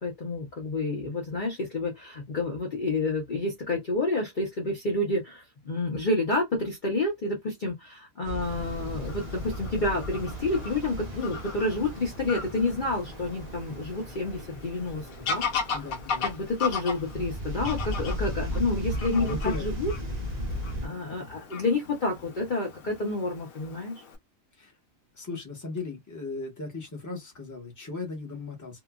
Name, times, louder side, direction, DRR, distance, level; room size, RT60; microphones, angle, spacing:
voice 1, 0.0-15.5 16.2-19.9 20.8-24.0, left 2 dB, 40° left, 0.9 m, -29 dB
sound 1, 8.2-20.9, equal, 40° right, 0.7 m, -36 dB
Fowl / Bird vocalization bird call bird song, 8.4-24.2, left 5 dB, 85° left, 1.2 m, -38 dB
voice 2, 15.7-16.2 19.1-19.6 24.6-24.7 25.1-28.8, left 4 dB, 15° left, 1.0 m, -37 dB
2.8 x 2.4 x 2.3 m
omnidirectional pair, 1.4 m